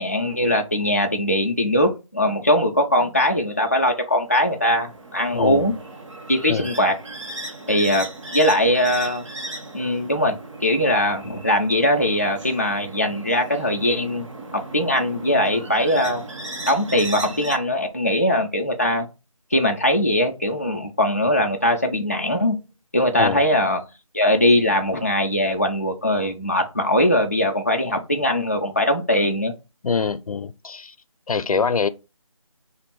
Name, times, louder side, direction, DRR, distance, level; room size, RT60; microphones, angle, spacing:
voice 1, 0.0-5.7 6.3-6.9 7.7-9.2 9.7-14.3 14.7-16.3 16.7-19.1 19.5-22.6 22.9-23.8 24.1-29.5, left 1 dB, 25° left, 0.3 m, -21 dB
sound 1, 4.3-17.6, right 2 dB, 60° right, 1.1 m, -36 dB
voice 2, 5.3-5.7 6.5-6.7 23.1-23.4 29.8-30.9 31.3-31.9, left 5 dB, 90° left, 0.5 m, -24 dB
3.5 x 2.5 x 4.4 m
figure-of-eight pair, 170°, 18 cm